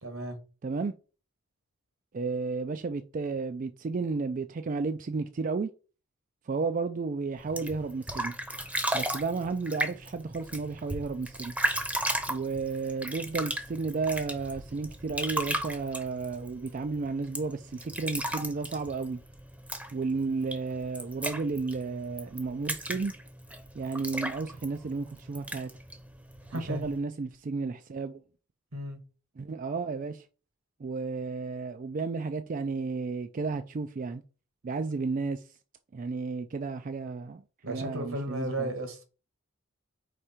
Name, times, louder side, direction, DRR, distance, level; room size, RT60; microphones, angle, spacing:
voice 1, 0.0-0.4 26.5-26.9 28.7-29.0 37.6-39.0, right 1 dB, 75° right, 1.6 m, -34 dB
voice 2, 0.6-0.9 2.1-5.7 6.5-8.3 8.9-11.5 12.3-19.2 19.9-23.1 23.7-25.7 26.5-28.2 29.4-30.3 30.8-34.2 34.6-35.4 35.9-38.7, right 4 dB, 40° right, 0.3 m, -33 dB
sound 1, 7.4-27.0, right 1 dB, 5° right, 0.7 m, -36 dB
4.9 x 4.5 x 4.3 m
head